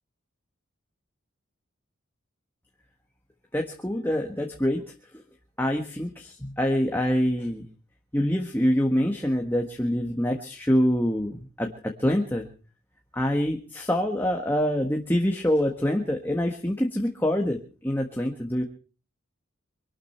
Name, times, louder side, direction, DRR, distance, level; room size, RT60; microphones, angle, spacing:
voice 1, 3.5-4.8 5.6-7.7 8.1-11.7 12.0-12.5 13.1-18.6, equal, 10° left, 2 dB, 1.5 m, -25 dB
24.5 x 12.5 x 4.5 m, 0.39 s
head